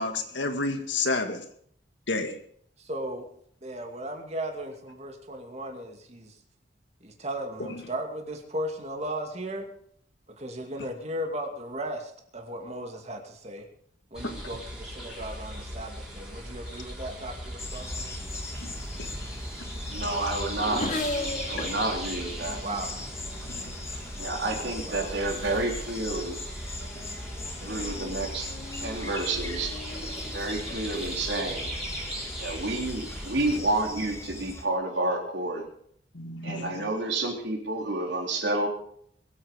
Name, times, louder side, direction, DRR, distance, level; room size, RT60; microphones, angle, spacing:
voice 1, 0.0-1.4 2.1-2.4 14.2-14.4 18.6-18.7 19.0-19.1 23.5-23.6 36.1-36.9, left 3 dB, 90° left, 6 dB, 2.0 m, -30 dB
voice 2, 2.8-3.3 3.6-6.4 7.0-9.7 10.4-13.7 14.1-18.1 22.6-22.9 24.9-25.1 27.6-27.9 36.7-36.8, right 1 dB, 40° right, 3 dB, 2.4 m, -36 dB
sound 1, 14.1-33.6, equal, 5° right, 4.1 m, -38 dB
sound 2, 17.6-34.6, left 2 dB, 15° left, 1.6 m, -40 dB
Race car auto racing / Accelerating revving vroom, 18.9-24.8 25.6-26.0 26.4-32.3, left 2 dB, 45° left, 2.1 m, -40 dB
voice 3, 19.9-20.9 21.5-22.6 24.2-26.4 27.6-28.5 28.8-29.7 30.3-31.7 32.4-35.6 36.4-38.7, right 2 dB, 75° right, 1 dB, 3.7 m, -29 dB
22.0 x 8.7 x 5.2 m, 0.64 s
head